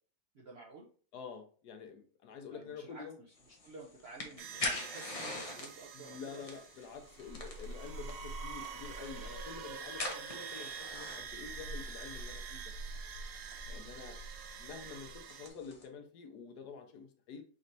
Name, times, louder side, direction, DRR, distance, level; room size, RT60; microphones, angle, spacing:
voice 1, 0.3-0.9 2.5-6.4 13.6-13.9, right 3 dB, 65° right, -2 dB, 0.6 m, -52 dB
voice 2, 1.1-3.2 5.9-12.6 13.7-14.2 14.6-17.4, left 6 dB, 70° left, 5 dB, 1.2 m, -48 dB
sound 1, 3.4-15.8, left 2 dB, 45° left, 0.4 m, -45 dB
sound 2, 4.4-15.5, right 4 dB, 80° right, 1.3 m, -45 dB
5.0 x 3.2 x 2.6 m, 0.41 s
omnidirectional pair, 1.9 m